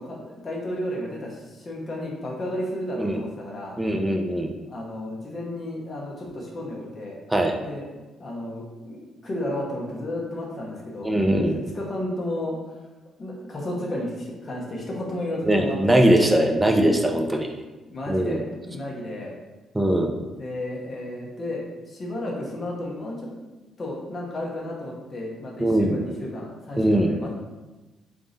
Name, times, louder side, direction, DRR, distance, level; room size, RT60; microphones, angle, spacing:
voice 1, 0.0-3.8 4.7-7.2 7.6-7.9 8.2-11.1 11.7-12.8 13.2-16.2 17.8-19.4 20.4-21.6 21.9-23.3 23.8-27.3, left 1 dB, 35° left, -3 dB, 1.0 m, -32 dB
voice 2, 3.8-4.5 7.3-7.6 11.0-11.6 15.4-17.5 18.1-18.4 19.7-20.1 25.6-26.0 26.8-27.1, right 1 dB, 10° right, 3 dB, 0.5 m, -21 dB
3.7 x 2.5 x 3.9 m, 1.2 s
cardioid pair, 90°, 0 cm